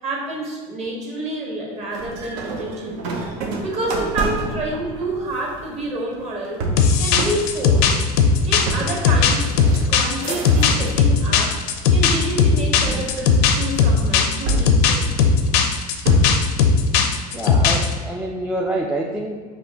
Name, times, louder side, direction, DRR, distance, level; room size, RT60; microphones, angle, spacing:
voice 1, 0.0-3.3 3.6-6.7 7.0-8.0 8.4-9.5 9.9-15.0, right 1 dB, 35° right, -3 dB, 1.4 m, -28 dB
sound 1, 1.9-11.1 11.5-12.1 12.8-13.9 14.4-16.5, right 2 dB, 70° right, 0.7 m, -29 dB
sound 2, 6.8-17.9, left 5 dB, 70° left, 0.5 m, -17 dB
voice 2, 17.3-19.4, right 1 dB, 5° right, -1 dB, 0.3 m, -26 dB
5.0 x 3.0 x 2.9 m, 1.5 s
supercardioid pair, 105°, 19 cm